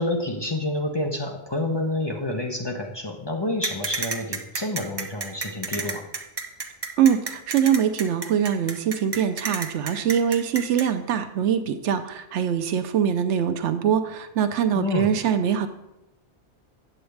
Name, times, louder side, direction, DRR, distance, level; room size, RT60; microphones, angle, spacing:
voice 1, 0.0-6.0 14.7-15.1, left 2 dB, 25° left, 1 dB, 0.6 m, -28 dB
sound 1, 3.6-10.8, right 4 dB, 30° right, 0.5 m, -30 dB
voice 2, 7.0-15.7, right 8 dB, 85° right, 9 dB, 1.0 m, -23 dB
8.7 x 8.0 x 3.3 m, 0.88 s
omnidirectional pair, 1.2 m